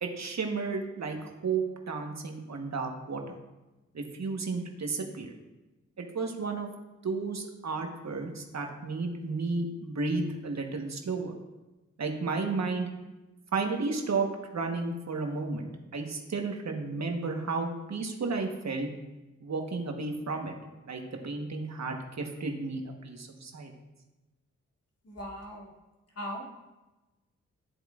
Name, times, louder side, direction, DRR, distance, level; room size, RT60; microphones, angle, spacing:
voice 1, 0.0-3.4 3.9-5.3 6.0-6.7 7.0-11.3 12.0-12.9 13.5-18.9 19.4-20.5 20.8-23.7, right 4 dB, 55° right, 3 dB, 1.3 m, -33 dB
voice 2, 25.0-25.7 26.2-26.5, equal, 50° left, -2 dB, 2.4 m, -39 dB
11.0 x 7.8 x 2.5 m, 1.1 s
supercardioid pair, 45°, 31 cm